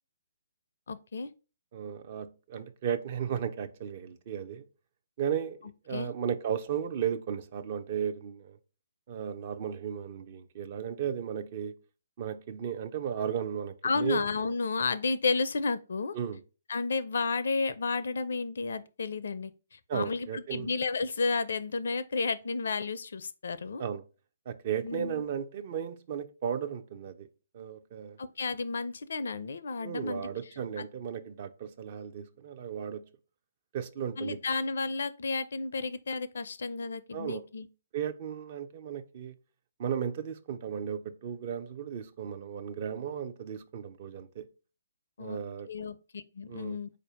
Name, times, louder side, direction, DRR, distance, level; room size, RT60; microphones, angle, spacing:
voice 1, 0.9-1.3 5.9-6.1 13.8-16.2 16.7-23.8 24.8-25.2 28.2-30.3 30.8-30.9 34.2-37.7 45.2-45.4 45.7-46.9, left 4 dB, 60° left, 0.4 m, -32 dB
voice 2, 1.7-4.6 5.2-8.6 9.1-11.8 12.2-14.2 16.1-16.4 19.9-20.7 23.8-24.0 24.5-27.3 27.5-28.2 29.8-33.0 33.7-34.4 37.1-37.5 37.9-39.3 39.8-44.4 45.2-45.7 46.5-46.8, right 8 dB, 40° right, 0.5 m, -35 dB
4.2 x 2.6 x 4.8 m
figure-of-eight pair, 135°, 0 cm